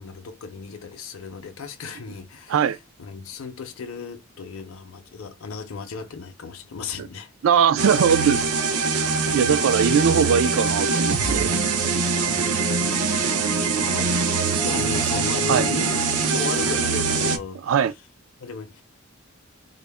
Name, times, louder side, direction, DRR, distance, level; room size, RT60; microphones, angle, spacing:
voice 1, 0.0-7.3 12.2-12.6 13.0-13.5 13.8-14.2 14.6-16.0 16.3-17.8 18.4-18.8, left 5 dB, 65° left, 0.5 m, -35 dB
voice 2, 7.4-8.4 9.3-11.5 15.5-15.7 17.7-17.9, right 7 dB, 65° right, 0.3 m, -20 dB
sound 1, 7.8-17.4, right 4 dB, 85° right, 0.7 m, -23 dB
3.8 x 2.0 x 3.4 m
head